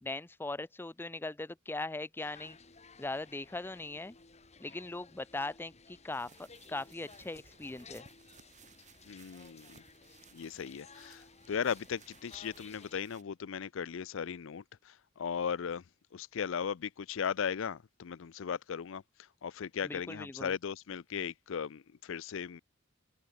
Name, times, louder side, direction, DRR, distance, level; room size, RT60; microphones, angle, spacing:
voice 1, 0.0-2.6 3.0-4.2 4.6-8.1 19.8-20.5, left 2 dB, 10° left, 0.4 m, -40 dB
sound 1, 2.2-13.0, left 4 dB, 35° left, 2.1 m, -57 dB
sound 2, 6.1-13.2, right 6 dB, 35° right, 1.7 m, -61 dB
voice 2, 9.1-9.8 10.3-15.8 16.1-22.6, left 7 dB, 70° left, 0.5 m, -37 dB
open air
head